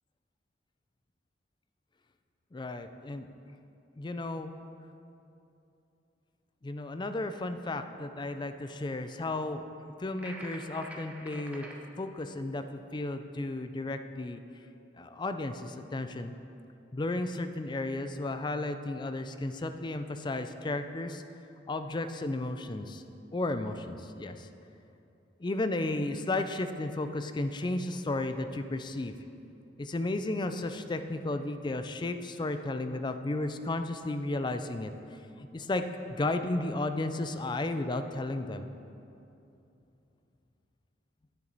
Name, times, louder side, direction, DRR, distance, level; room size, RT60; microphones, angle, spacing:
voice 1, 2.5-3.3 4.0-4.5 6.6-9.6 10.0-11.7 12.0-14.4 15.0-16.3 16.9-21.2 21.7-23.0 23.3-24.5 25.4-29.1 29.8-34.9 35.4-38.7, left 2 dB, 25° left, 9 dB, 0.4 m, -33 dB
sound 1, 10.2-11.8, right 1 dB, 10° right, 0.9 m, -45 dB
10.5 x 9.5 x 4.0 m, 2.8 s
head